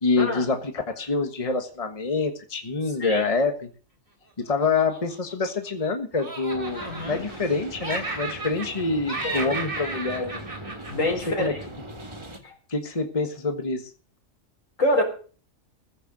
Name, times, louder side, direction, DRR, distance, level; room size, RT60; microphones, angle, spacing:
voice 1, 0.0-3.7 4.4-10.4 11.4-11.6 12.7-13.9, left 4 dB, 30° left, 1.5 m, -26 dB
Laughter, 4.6-5.9 6.2-7.5 7.8-8.8 9.1-11.7, right 2 dB, 45° right, 3.4 m, -34 dB
sound 1, 6.5-12.4, right 1 dB, 20° right, 1.8 m, -40 dB
voice 2, 6.8-7.3 9.2-9.5 10.9-11.6 12.4-12.5 14.8-15.0, left 1 dB, 85° left, 4.5 m, -26 dB
15.5 x 6.8 x 8.0 m
omnidirectional pair, 1.3 m